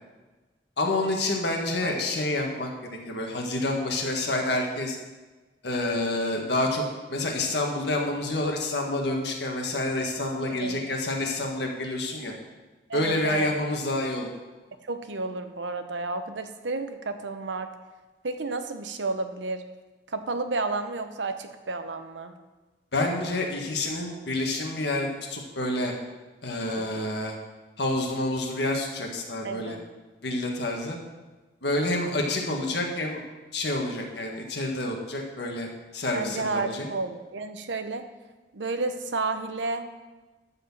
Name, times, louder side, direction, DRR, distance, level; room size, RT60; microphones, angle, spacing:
voice 1, 0.8-5.0 5.6-6.8 7.1-12.3 12.9-14.3 22.9-25.9 26.4-27.4 27.8-29.8 30.2-31.0 31.6-33.2 33.5-36.9, left 2 dB, 65° left, 1 dB, 1.7 m, -28 dB
voice 2, 10.5-10.8 12.9-13.5 14.9-17.7 18.2-19.6 20.1-22.3 26.8-27.1 29.4-29.8 36.1-38.0 38.5-39.9, right 3 dB, 80° right, 8 dB, 0.9 m, -31 dB
12.5 x 4.3 x 7.3 m, 1.2 s
head